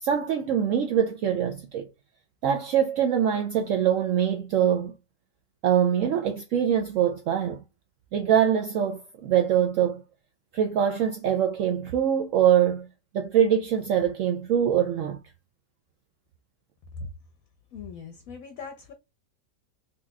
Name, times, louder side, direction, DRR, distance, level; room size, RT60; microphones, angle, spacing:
voice 1, 0.0-1.9 2.4-4.9 5.6-7.6 8.1-10.0 10.5-12.9 13.1-15.2, right 9 dB, 80° right, 0.7 m, -23 dB
voice 2, 17.7-18.9, left 4 dB, 65° left, 0.9 m, -40 dB
3.9 x 2.9 x 2.2 m
omnidirectional pair, 1.9 m